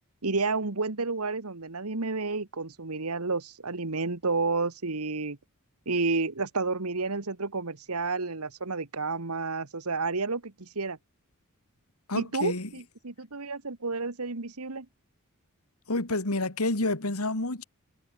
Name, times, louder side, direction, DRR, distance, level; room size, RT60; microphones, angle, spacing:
voice 1, 0.2-5.4 5.8-11.0 12.1-14.9, right 3 dB, 80° right, 1.7 m, -30 dB
voice 2, 12.1-12.7 15.9-17.6, left 2 dB, 80° left, 2.6 m, -29 dB
head